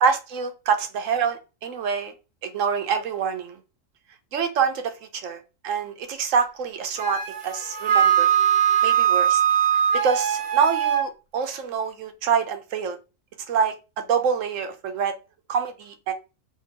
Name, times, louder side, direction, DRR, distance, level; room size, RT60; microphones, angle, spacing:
voice 1, 0.0-2.1 2.4-3.6 4.3-5.4 5.6-8.3 8.8-9.4 10.0-13.0 13.5-13.7 14.1-15.1 15.5-16.1, right 6 dB, 65° right, 0.9 m, -25 dB
Wind instrument woodwind instrument, 7.0-11.1, right 9 dB, 85° right, 1.4 m, -21 dB
3.6 x 2.7 x 2.8 m
omnidirectional pair, 1.6 m